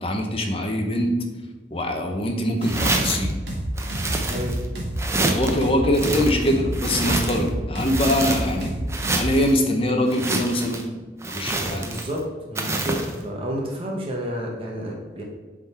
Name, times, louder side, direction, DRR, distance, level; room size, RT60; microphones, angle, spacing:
voice 1, 0.0-1.1 1.7-3.4 5.3-8.7 9.2-10.9 11.3-11.8, left 1 dB, 30° left, 3 dB, 0.8 m, -23 dB
sound 1, 2.6-3.3 3.8-4.7 5.0-5.6 5.9-7.5 7.8-8.6 8.9-9.5 10.1-10.8 11.2-12.2 12.6-13.2, right 2 dB, 15° right, 0.5 m, -27 dB
sound 2, 2.6-9.3, right 1 dB, 80° right, 1.3 m, -29 dB
voice 2, 4.3-4.6 11.6-15.2, equal, 30° right, -1 dB, 0.9 m, -31 dB
7.6 x 3.8 x 4.3 m, 1.3 s
head